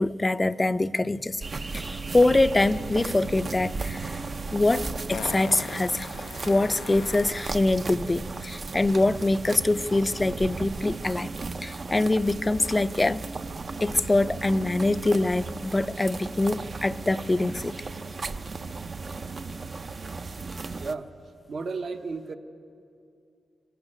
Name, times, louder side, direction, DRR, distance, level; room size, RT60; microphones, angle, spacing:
voice 1, 0.0-1.4 1.7-4.2 4.5-6.1 6.5-11.3 11.6-13.2 13.8-17.7, left 2 dB, 25° left, 13 dB, 0.5 m, -24 dB
sound 1, 1.4-20.9, right 4 dB, 45° right, 0.6 m, -35 dB
Fart, 4.0-4.1 5.1-7.6 10.1-10.2, left 7 dB, 85° left, 0.5 m, -40 dB
voice 2, 20.7-21.1 21.5-22.4, right 4 dB, 60° right, 6 dB, 1.1 m, -33 dB
23.5 x 15.0 x 8.9 m, 2.5 s
cardioid pair, 70°, 0 cm